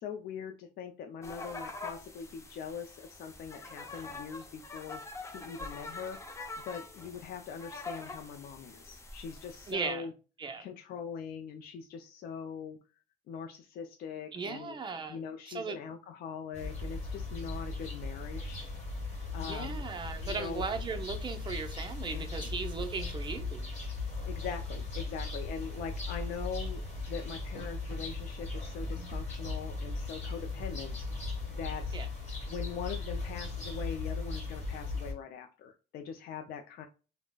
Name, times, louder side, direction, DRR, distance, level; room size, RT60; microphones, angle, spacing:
voice 1, 0.0-5.0 5.3-6.4 6.6-10.1 10.6-12.8 13.3-14.8 15.1-18.6 19.3-19.8 20.2-20.6 22.1-22.5 24.2-26.8 27.1-31.0 31.5-32.0 32.5-36.8, left 7 dB, 65° left, 0.4 m, -42 dB
sound 1, 1.2-9.7, left 3 dB, 15° left, 0.5 m, -45 dB
voice 2, 9.7-10.1 10.4-10.7 14.3-15.2 15.5-15.8 19.4-23.7 31.9-32.1, right 5 dB, 30° right, 0.6 m, -37 dB
sound 2, 16.5-35.1, left 3 dB, 40° left, 1.2 m, -38 dB
3.8 x 2.1 x 2.2 m
cardioid pair, 110°, 17 cm